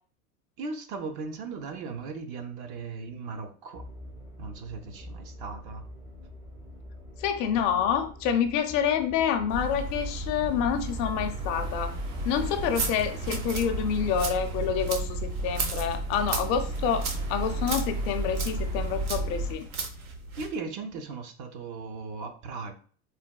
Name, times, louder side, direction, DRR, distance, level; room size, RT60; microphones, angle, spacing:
voice 1, 0.6-3.9 4.4-5.8 20.4-22.7, right 4 dB, 50° right, 6 dB, 0.6 m, -37 dB
sound 1, 3.7-14.9, left 2 dB, 5° right, 0.5 m, -45 dB
voice 2, 7.2-11.9 12.2-19.7, left 8 dB, 45° left, 7 dB, 0.5 m, -28 dB
sound 2, 9.5-19.5, right 2 dB, 70° right, 1.1 m, -33 dB
sound 3, 12.5-20.6, right 4 dB, 85° right, 0.8 m, -36 dB
4.0 x 2.2 x 2.2 m, 0.44 s
supercardioid pair, 115°, 42 cm